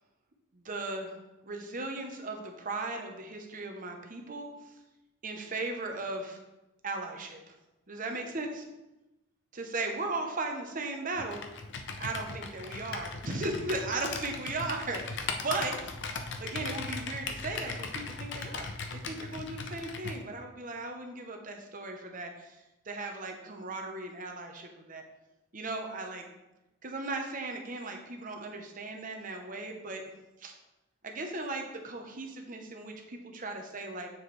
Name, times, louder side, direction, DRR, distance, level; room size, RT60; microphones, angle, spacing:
voice 1, 0.5-1.1 1.4-4.5 5.2-6.4 6.8-7.5 7.9-8.6 9.5-11.5 12.0-15.9 16.4-22.6 22.8-25.0 25.5-26.2 26.8-30.0 30.4-30.5 31.0-34.1, right 2 dB, 40° right, 3 dB, 0.8 m, -37 dB
Computer keyboard, 11.2-20.2, left 4 dB, 55° left, 0.6 m, -38 dB
7.1 x 6.4 x 3.3 m, 0.99 s
head